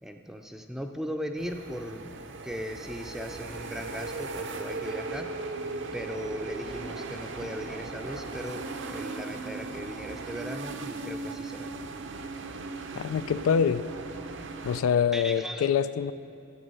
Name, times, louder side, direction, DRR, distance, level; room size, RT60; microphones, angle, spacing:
voice 1, 0.0-2.2 2.4-5.3 5.9-11.7 15.1-15.7, equal, ahead, 4 dB, 0.5 m, -38 dB
sound 1, 1.4-14.8, right 3 dB, 60° right, 0.6 m, -38 dB
voice 2, 12.9-13.9 14.6-16.1, left 7 dB, 85° left, 14 dB, 0.3 m, -25 dB
14.0 x 7.9 x 5.4 m, 2.8 s
head